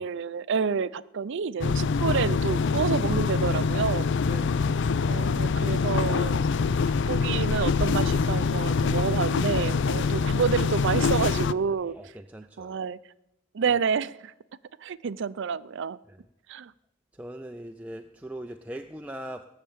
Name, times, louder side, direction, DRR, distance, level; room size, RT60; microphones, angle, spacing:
voice 1, 0.0-4.1 5.1-6.4 7.0-12.0 12.6-13.0 13.5-14.3 14.8-16.0 16.5-16.7, right 6 dB, 65° right, 0.5 m, -28 dB
sound 1, 1.6-11.5, left 5 dB, 60° left, 0.4 m, -25 dB
voice 2, 4.2-4.6 9.9-10.1 11.9-12.8 13.7-13.8 16.1-16.2 17.1-19.4, right 1 dB, 5° right, 0.4 m, -41 dB
17.5 x 6.6 x 8.6 m
head